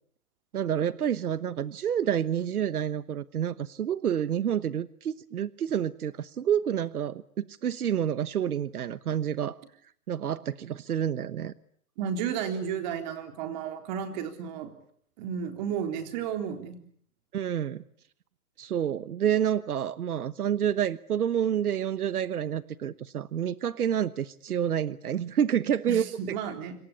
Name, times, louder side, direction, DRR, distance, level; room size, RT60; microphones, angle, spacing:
voice 1, 0.5-9.6 10.1-11.5 17.3-17.8 18.6-26.4, right 9 dB, 80° right, 15 dB, 1.2 m, -28 dB
voice 2, 12.0-14.7 15.2-16.8 25.8-26.7, right 7 dB, 30° right, 7 dB, 3.7 m, -33 dB
27.5 x 25.0 x 8.7 m, 0.64 s
hypercardioid pair, 160°, 44 cm